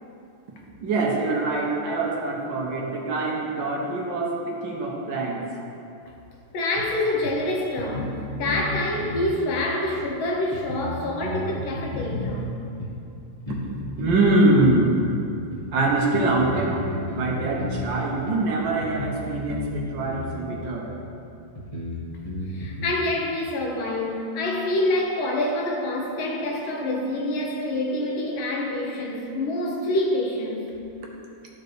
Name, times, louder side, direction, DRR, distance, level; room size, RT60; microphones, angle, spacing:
voice 1, 0.8-5.4 13.5-13.6 14.0-14.9 15.7-16.8 17.1-20.9, right 2 dB, 65° right, 1.5 m, -24 dB
voice 2, 6.5-12.5 22.5-30.6, left 1 dB, 70° left, 1.7 m, -26 dB
sound 1, 6.8-6.9 7.2-7.3 7.8-8.7 9.0-9.3 10.0-10.1 10.5-12.3 12.8-12.9 13.5-13.7 14.0-14.8 15.5-15.6 16.1-17.9 18.3-18.4 18.8-19.7 20.0-20.3 21.0-21.1 21.6-22.9, left 2 dB, 20° left, 1.2 m, -32 dB
12.5 x 4.4 x 3.3 m
omnidirectional pair, 2.3 m